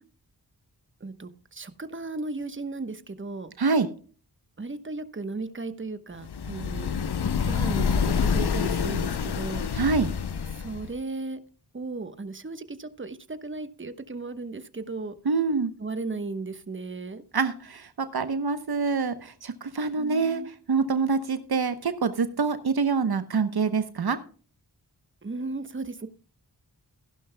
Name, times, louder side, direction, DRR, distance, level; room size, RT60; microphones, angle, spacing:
voice 1, 1.0-3.5 4.6-6.9 7.4-9.7 10.6-11.4 11.7-15.1 15.8-17.2 20.0-20.5 25.2-26.1, right 3 dB, 30° right, 11 dB, 1.1 m, -35 dB
sound 1, 6.2-11.0, left 6 dB, 70° left, 0.8 m, -27 dB
voice 2, 9.7-10.1 15.2-15.7 17.3-20.4 20.7-24.2, right 4 dB, 65° right, 11 dB, 0.9 m, -25 dB
15.5 x 11.5 x 2.2 m, 0.40 s
wide cardioid pair, 60°, 40 cm